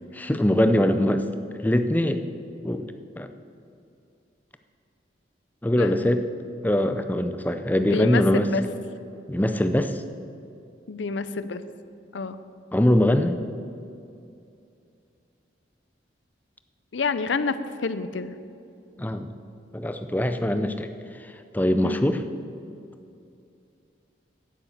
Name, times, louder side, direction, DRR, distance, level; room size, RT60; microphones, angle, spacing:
voice 1, 0.1-1.3 1.6-2.2 2.6-2.9 3.2-3.3 5.6-6.3 6.6-8.5 9.3-10.0 12.7-13.4 19.0-19.3 19.7-20.9 21.2-22.2, left 1 dB, 10° left, 8 dB, 0.5 m, -22 dB
voice 2, 7.8-8.6 10.9-11.6 12.1-12.4 16.9-17.6 17.8-18.3 21.8-22.0, left 4 dB, 80° left, 12 dB, 0.6 m, -28 dB
9.5 x 9.2 x 7.1 m, 2.6 s
head